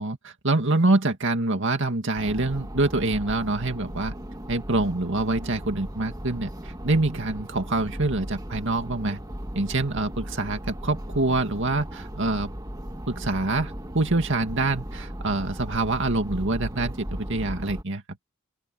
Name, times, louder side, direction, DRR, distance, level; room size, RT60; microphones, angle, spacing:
voice 1, 0.0-4.1 4.5-9.2 9.5-12.5 13.1-18.0, right 2 dB, 60° right, 2.3 m, -25 dB
sound 1, 2.2-17.8, equal, 20° right, 1.9 m, -37 dB
open air
head